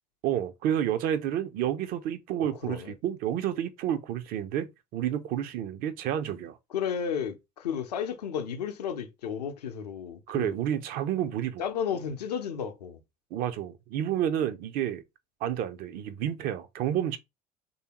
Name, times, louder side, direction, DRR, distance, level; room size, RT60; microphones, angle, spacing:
voice 1, 0.2-6.6 10.3-11.6 13.3-15.0 15.4-17.2, right 10 dB, 45° right, 0.5 m, -30 dB
voice 2, 2.4-2.9 6.7-10.5 11.6-13.0, left 7 dB, 75° left, 0.6 m, -33 dB
3.3 x 2.7 x 2.9 m
figure-of-eight pair, 65°, 21 cm